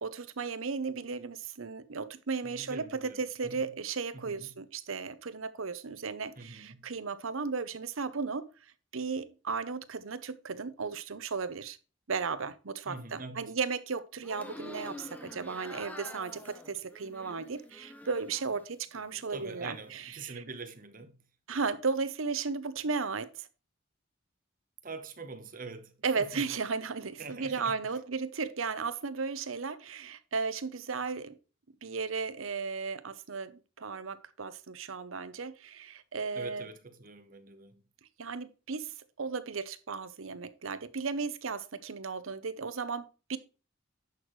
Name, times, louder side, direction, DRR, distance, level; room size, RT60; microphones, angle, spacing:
voice 1, 0.0-8.5 8.9-11.8 12.1-20.4 21.5-23.5 26.0-31.4 31.8-36.7 38.2-38.9 39.2-43.4, right 4 dB, 75° right, 0.8 m, -35 dB
voice 2, 2.4-3.7 4.1-4.5 6.4-6.9 12.9-13.5 19.3-21.2 24.8-26.5 27.2-27.8 36.3-37.8, right 3 dB, 40° right, 1.1 m, -44 dB
sound 1, 14.2-18.6 18.9-19.7, left 1 dB, 5° left, 0.7 m, -47 dB
10.5 x 6.3 x 3.2 m
head